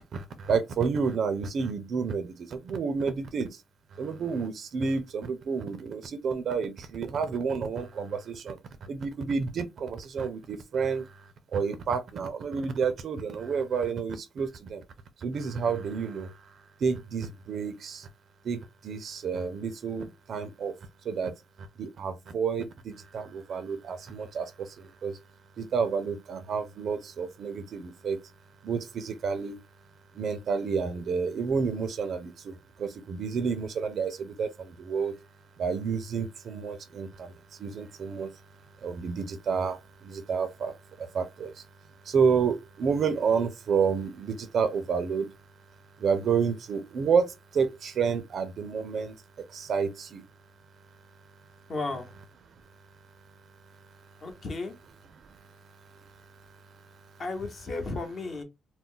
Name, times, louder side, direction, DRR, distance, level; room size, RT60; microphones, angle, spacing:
voice 1, 0.1-3.6 3.9-14.8 15.2-16.5 16.8-18.1 18.4-20.7 21.0-21.3 21.6-25.2 25.6-28.2 28.6-29.6 30.1-35.1 35.6-38.3 38.8-41.7 42.0-45.3 46.0-50.2 55.1-55.2, right 5 dB, 60° right, 0.4 m, -30 dB
voice 2, 51.7-52.1 54.2-54.7 57.2-58.4, left 3 dB, 45° left, 0.9 m, -34 dB
2.3 x 2.0 x 3.7 m
cardioid pair, 90°, 0 cm